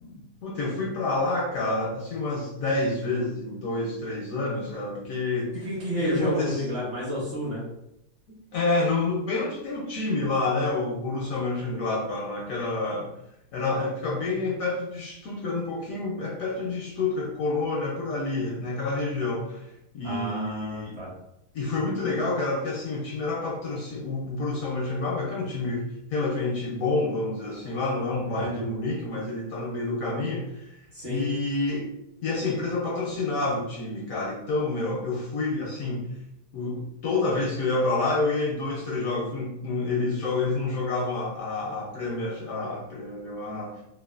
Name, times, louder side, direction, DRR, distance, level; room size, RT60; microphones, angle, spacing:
voice 1, 0.0-5.6 6.0-6.6 8.5-13.1 13.5-21.0 21.5-32.0 32.2-36.1 36.5-43.8, left 3 dB, 70° left, -3 dB, 0.8 m, -28 dB
voice 2, 5.5-7.6 20.0-21.1 28.3-28.8 30.9-31.2, equal, 45° right, -7 dB, 0.9 m, -30 dB
3.0 x 2.3 x 2.3 m, 0.83 s
omnidirectional pair, 1.8 m